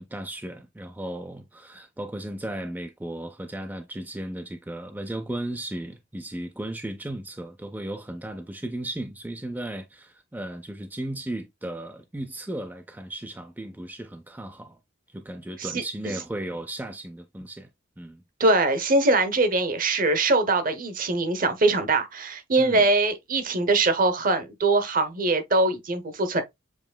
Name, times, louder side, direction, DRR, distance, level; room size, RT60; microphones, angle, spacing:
voice 1, 0.0-14.8 15.1-17.7 18.0-18.2 22.6-22.8, right 1 dB, 10° right, 0.4 m, -35 dB
voice 2, 18.4-26.4, right 2 dB, 45° right, 0.9 m, -22 dB
7.3 x 3.1 x 2.2 m
head